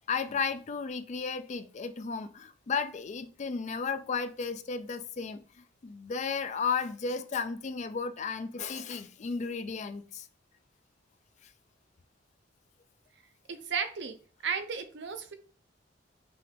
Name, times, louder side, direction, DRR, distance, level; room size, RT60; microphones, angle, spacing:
voice 1, 0.1-5.4 5.8-10.3, left 5 dB, 40° left, 0.4 m, -34 dB
voice 2, 13.5-14.2 14.4-15.3, right 6 dB, 65° right, 0.7 m, -34 dB
5.7 x 2.5 x 3.4 m
head